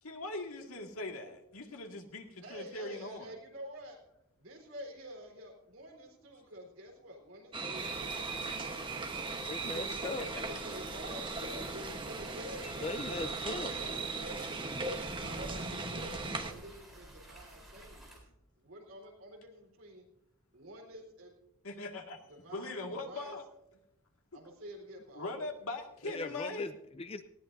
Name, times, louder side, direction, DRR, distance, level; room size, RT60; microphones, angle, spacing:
voice 1, 0.0-3.3 9.7-10.3 21.6-22.2 22.5-23.4 25.2-26.7, left 2 dB, 75° left, 3 dB, 2.0 m, -41 dB
voice 2, 2.4-4.0 4.4-9.8 10.1-13.2 13.7-14.5 15.2-18.2 18.6-20.1 20.5-21.3 22.3-23.4 24.3-25.3 26.0-26.1, equal, 65° right, 0 dB, 3.9 m, -49 dB
sound 1, 7.5-16.5, right 3 dB, 20° right, 1.1 m, -38 dB
sound 2, 7.7-18.2, right 1 dB, ahead, 3.8 m, -52 dB
voice 3, 9.5-10.3 12.8-13.8 26.0-27.2, left 2 dB, 25° left, 11 dB, 0.5 m, -39 dB
19.0 x 17.0 x 2.7 m, 0.88 s
head